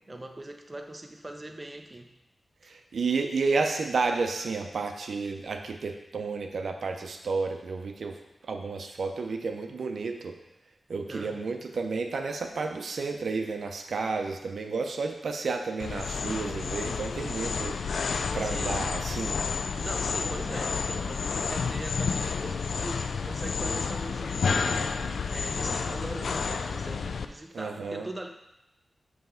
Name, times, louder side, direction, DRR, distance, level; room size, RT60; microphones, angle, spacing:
voice 1, 0.1-2.1 2.6-2.7 11.1-11.4 17.3-17.6 18.4-18.9 19.8-28.3, right 1 dB, 25° right, 4 dB, 0.5 m, -41 dB
voice 2, 2.7-8.2 8.5-10.3 10.9-17.7 18.3-19.4 27.5-28.1, right 4 dB, 80° right, 4 dB, 0.5 m, -31 dB
sound 1, 15.8-27.2, left 5 dB, 90° left, 0.3 m, -30 dB
5.4 x 3.4 x 5.7 m, 0.89 s
wide cardioid pair, 110°, 0 cm